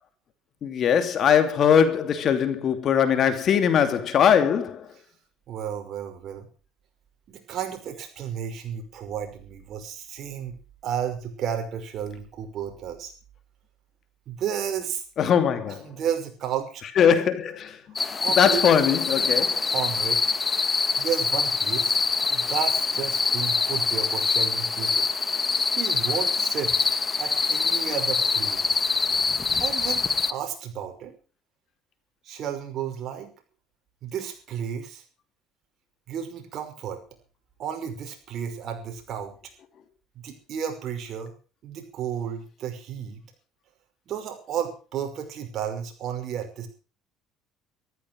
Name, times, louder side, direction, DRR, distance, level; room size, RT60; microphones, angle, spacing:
voice 1, 0.6-4.9 15.2-15.9 17.0-17.8 18.3-19.7, left 8 dB, 50° left, 2.8 m, -21 dB
voice 2, 5.5-6.5 7.3-10.6 10.8-13.1 14.3-15.0 15.7-16.8 18.2-18.6 19.7-20.2 21.0-22.0 22.3-25.1 25.8-26.7 27.2-28.9 29.6-31.1 32.2-33.3 34.0-35.0 36.1-37.0 37.6-39.3 40.2-41.3 41.6-43.2 44.1-46.7, right 8 dB, 55° right, 5.5 m, -32 dB
sound 1, 18.0-30.3, left 4 dB, 25° left, 1.4 m, -24 dB
14.5 x 14.0 x 6.3 m
supercardioid pair, 95°, 0 cm